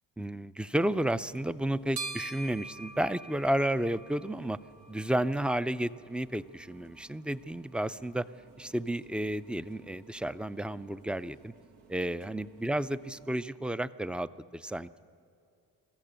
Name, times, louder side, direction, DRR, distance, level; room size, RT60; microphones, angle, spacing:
voice 1, 0.2-4.6 4.9-8.3 8.6-11.5 11.9-15.0, right 1 dB, 5° right, 14 dB, 0.4 m, -32 dB
sound 1, 1.0-13.5, right 3 dB, 80° right, 1.2 m, -48 dB
21.5 x 14.5 x 8.8 m, 2.4 s
cardioid pair, 75°, 39 cm